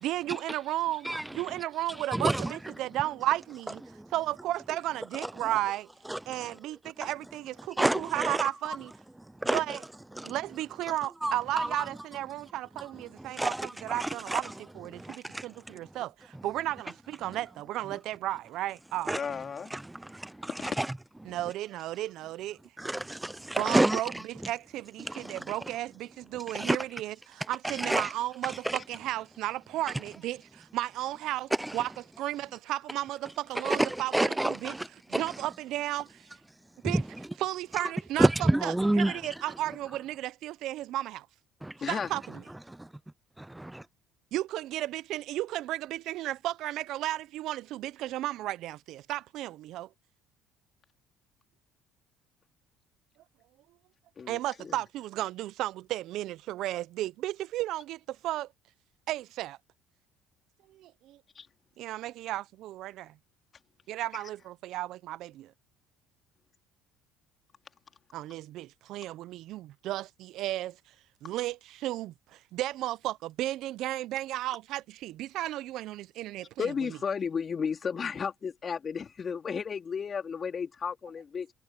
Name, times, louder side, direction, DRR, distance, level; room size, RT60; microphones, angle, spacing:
voice 1, 0.0-1.1 1.3-3.8 4.1-5.9 6.3-8.9 9.5-9.8 10.2-19.2 21.2-22.6 23.6-31.9 32.2-34.8 35.1-36.2 36.8-37.0 37.4-41.3 41.9-42.4 44.3-49.9 54.3-58.5 59.1-59.6 60.7-61.2 61.8-63.1 63.9-65.5 68.1-70.8 71.2-76.7, right 15 dB, 65° right, 0.7 m, -34 dB
voice 2, 2.1-2.5 6.1-6.2 7.8-8.4 9.4-9.6 10.2-10.4 11.2-11.8 13.4-14.5 14.9-15.5 19.1-19.2 19.7-20.9 22.8-24.2 25.0-25.4 26.5-26.8 27.6-28.1 28.5-28.8 31.6-31.8 33.6-35.2 36.9-37.0 38.2-39.2 41.6-41.7 43.4-43.8, right 1 dB, 10° right, 0.5 m, -29 dB
voice 3, 19.1-19.7 20.6-20.8 41.8-42.1 54.2-54.8 61.4-61.5 64.1-64.2 76.6-81.5, left 6 dB, 40° left, 3.6 m, -33 dB
hypercardioid pair, 70°, 0 cm